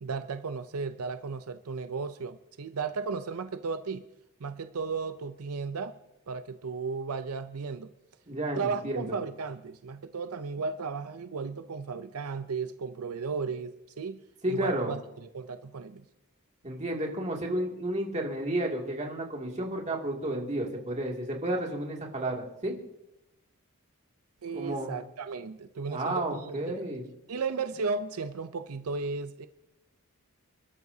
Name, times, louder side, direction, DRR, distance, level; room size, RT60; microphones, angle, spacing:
voice 1, 0.0-4.0 4.4-6.0 6.3-7.9 8.5-14.2 14.5-16.1 24.4-26.9 27.3-29.5, right 4 dB, 90° right, 10 dB, 0.6 m, -35 dB
voice 2, 8.3-9.2 14.4-14.9 16.6-22.8 24.5-24.9 25.9-27.0, right 1 dB, 30° right, 0 dB, 2.5 m, -32 dB
28.0 x 12.5 x 2.8 m, 0.89 s
head